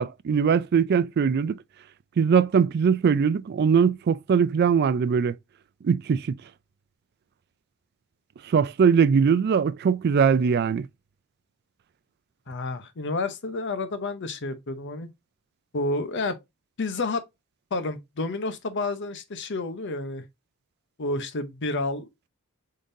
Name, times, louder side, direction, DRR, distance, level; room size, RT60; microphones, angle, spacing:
voice 1, 0.0-1.6 2.2-5.3 5.8-6.3 8.5-10.9, right 6 dB, 45° right, 0.3 m, -21 dB
voice 2, 12.5-15.1 15.7-16.4 16.8-17.2 17.7-20.2 21.0-22.3, left 2 dB, 55° left, 0.8 m, -30 dB
5.3 x 3.8 x 2.6 m
head